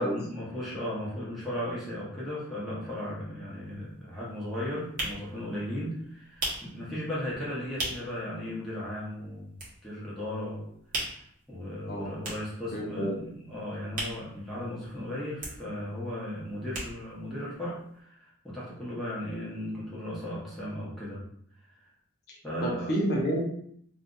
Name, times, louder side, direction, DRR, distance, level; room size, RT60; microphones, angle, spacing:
voice 1, 0.0-9.6 9.8-10.7 11.5-21.2 22.4-23.0, left 1 dB, ahead, -8 dB, 0.9 m, -36 dB
sound 1, 3.1-3.2 3.5-8.3 8.6-8.7 8.9-10.2 10.5-15.0 15.2-17.3 17.6-17.7 17.9-18.0, right 1 dB, 40° right, 0.9 m, -38 dB
voice 2, 11.9-12.3 12.7-13.2 22.3-23.4, equal, 45° left, -2 dB, 0.6 m, -30 dB
2.7 x 2.4 x 3.8 m, 0.68 s
head